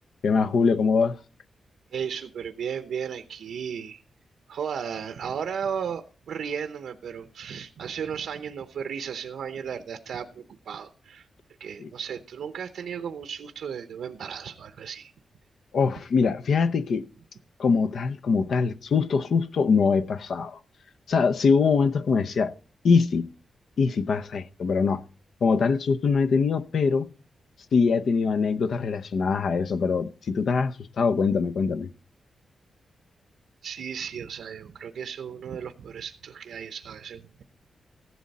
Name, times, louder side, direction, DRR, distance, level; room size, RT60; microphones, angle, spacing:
voice 1, 0.2-1.2 11.8-11.9 15.7-17.1 17.6-20.6 21.1-22.5 22.8-23.3 23.8-25.0 25.4-27.1 27.7-31.9, left 5 dB, 55° left, 0.8 m, -23 dB
voice 2, 1.9-4.0 4.5-11.3 11.6-15.1 33.6-37.4, right 7 dB, 75° right, 0.8 m, -35 dB
15.0 x 11.0 x 4.2 m
wide cardioid pair, 175°, 0 cm